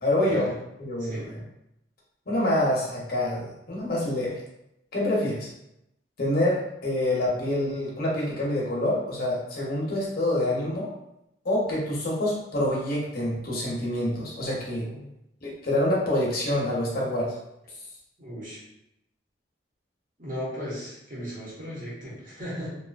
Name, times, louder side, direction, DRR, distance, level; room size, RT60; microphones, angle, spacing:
voice 1, 0.0-0.5 0.8-1.4 2.3-4.4 4.9-5.5 6.2-10.9 11.4-14.9 15.4-17.3, left 1 dB, 55° left, -4 dB, 0.8 m, -26 dB
voice 2, 1.0-1.3 14.8-15.1 18.2-18.6 20.2-22.8, equal, 50° right, -7 dB, 1.1 m, -36 dB
2.6 x 2.4 x 2.3 m, 0.83 s
head